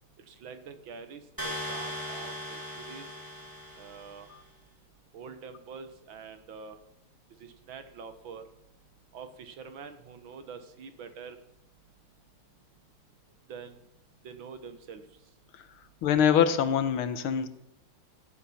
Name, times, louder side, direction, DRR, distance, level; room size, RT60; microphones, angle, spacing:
voice 1, 0.2-3.1 3.8-4.3 5.1-6.8 7.4-8.4 9.1-11.4 13.5-13.8 14.2-15.0, right 5 dB, 65° right, 9 dB, 2.0 m, -45 dB
sound 1, 1.4-4.3, equal, 10° right, 3.4 m, -38 dB
voice 2, 16.0-17.5, left 8 dB, 75° left, 12 dB, 1.8 m, -24 dB
16.5 x 10.0 x 5.8 m, 0.79 s
omnidirectional pair, 2.4 m